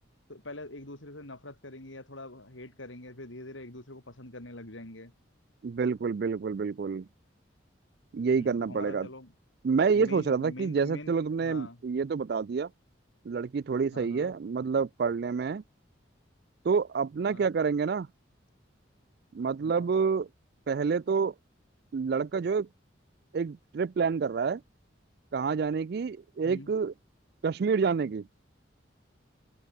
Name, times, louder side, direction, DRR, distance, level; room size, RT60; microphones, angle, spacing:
voice 1, 0.3-5.1 8.3-9.3 9.9-11.8 13.9-14.3 17.3-17.5 19.6-19.9 26.4-26.7, left 1 dB, 85° left, 5.7 m, -44 dB
voice 2, 5.6-7.1 8.1-9.1 9.6-12.7 13.3-15.6 16.6-18.1 19.3-20.3 20.7-21.3 21.9-22.7 23.3-24.6 25.3-26.9 27.4-28.3, right 5 dB, 55° right, 0.4 m, -28 dB
open air
head